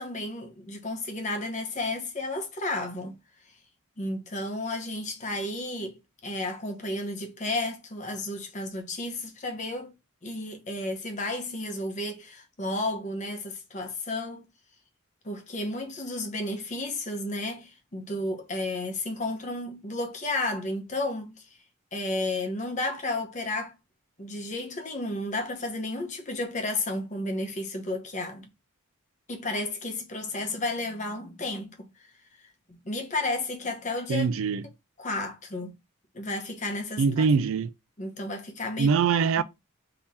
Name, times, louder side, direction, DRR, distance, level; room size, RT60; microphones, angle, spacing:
voice 1, 0.0-3.1 4.0-9.9 10.2-14.5 15.2-21.4 21.9-23.7 24.2-28.5 29.3-31.9 32.7-34.3 35.0-35.7 36.1-37.3 38.0-38.9 39.4-39.5, left 2 dB, 35° left, 0.8 m, -32 dB
voice 2, 34.1-34.6 37.0-37.7 38.8-39.4, right 5 dB, 70° right, 0.3 m, -23 dB
3.6 x 2.9 x 4.0 m
head